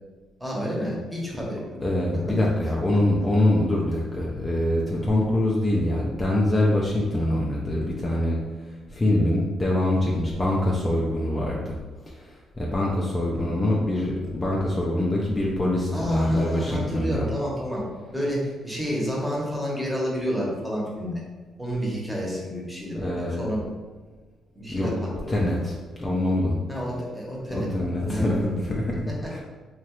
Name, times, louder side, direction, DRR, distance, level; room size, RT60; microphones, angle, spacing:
voice 1, 0.4-1.6 2.1-2.4 2.6-2.7 13.3-13.6 15.9-17.8 18.1-21.2 21.6-23.6 24.5-24.9 25.5-25.6 26.0-26.1 26.7-27.7 28.0-28.8 29.2-29.4, equal, 5° right, -4 dB, 0.9 m, -30 dB
voice 2, 1.8-8.4 8.9-11.8 12.0-17.3 22.9-23.5 24.7-24.9 25.3-26.6 27.5-29.4, left 1 dB, 25° left, -3 dB, 0.4 m, -24 dB
3.0 x 2.3 x 3.0 m, 1.3 s
cardioid pair, 90°, 0 cm